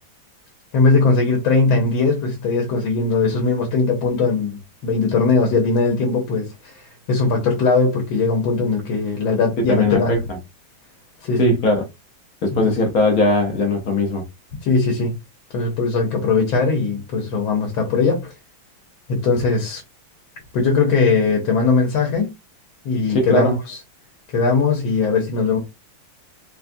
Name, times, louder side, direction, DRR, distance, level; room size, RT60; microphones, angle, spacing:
voice 1, 0.7-10.1 11.2-11.5 12.5-12.7 14.6-15.1 15.5-18.3 19.1-19.8 20.5-22.3 22.8-23.8 24.3-25.6, left 4 dB, 75° left, 1.6 m, -19 dB
voice 2, 9.7-10.2 11.4-11.8 12.4-14.2 23.1-23.5, left 2 dB, 60° left, 1.1 m, -19 dB
4.2 x 2.4 x 2.5 m
omnidirectional pair, 2.2 m